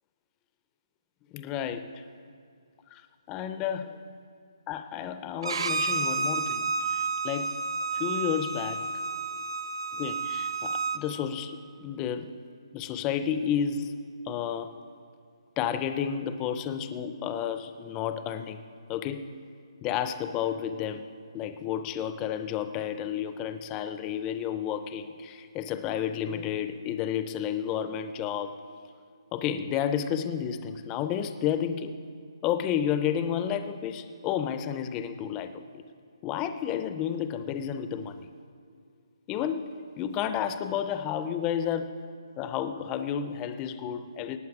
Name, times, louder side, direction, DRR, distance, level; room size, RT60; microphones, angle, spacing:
voice 1, 1.3-2.0 2.9-3.0 3.3-4.0 4.7-7.6 7.9-8.9 9.9-12.3 12.7-14.0 14.2-14.7 15.6-18.6 18.9-19.4 19.8-21.1 21.3-28.6 29.3-32.0 32.4-35.8 36.2-38.3 39.3-42.0 42.4-44.4, left 9 dB, 15° left, 10 dB, 0.4 m, -31 dB
Bowed string instrument, 5.4-11.0, right 4 dB, 65° right, 0.7 m, -30 dB
18.0 x 8.2 x 4.8 m, 2.2 s
hypercardioid pair, 160°, 3 cm